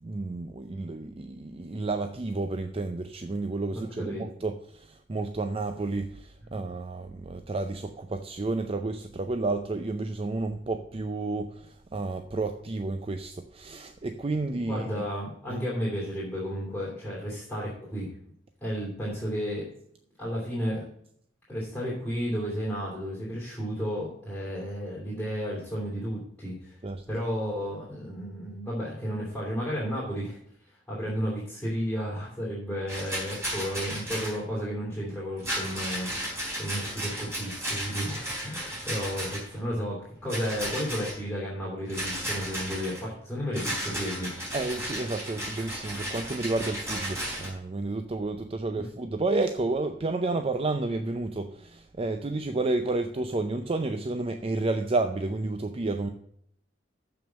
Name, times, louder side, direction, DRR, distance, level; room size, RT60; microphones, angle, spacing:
voice 1, 0.0-15.0 15.5-15.6 26.8-27.1 38.8-39.0 44.5-56.1, right 2 dB, 30° right, 0.5 m, -31 dB
voice 2, 3.7-4.2 14.7-18.1 18.6-19.6 20.2-20.9 21.5-26.8 27.1-30.4 30.7-40.0 40.2-44.3 48.7-48.9, equal, 5° left, 3.1 m, -33 dB
Rattle, 32.9-34.4 35.4-39.6 40.3-41.2 41.9-43.0 43.5-47.5, equal, 15° right, 3.7 m, -34 dB
7.1 x 6.1 x 7.0 m
head